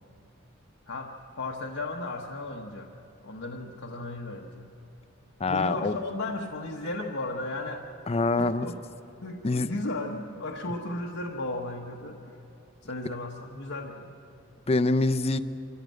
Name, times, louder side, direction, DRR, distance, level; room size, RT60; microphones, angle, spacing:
voice 1, 0.9-4.7 5.5-7.9 8.4-8.8 9.2-12.4 12.8-14.2, left 2 dB, 80° left, 0 dB, 1.1 m, -35 dB
voice 2, 5.4-5.9 8.1-8.7 9.4-9.7 14.7-15.4, left 3 dB, 30° left, 13 dB, 0.5 m, -25 dB
25.5 x 14.5 x 7.6 m, 2.9 s
head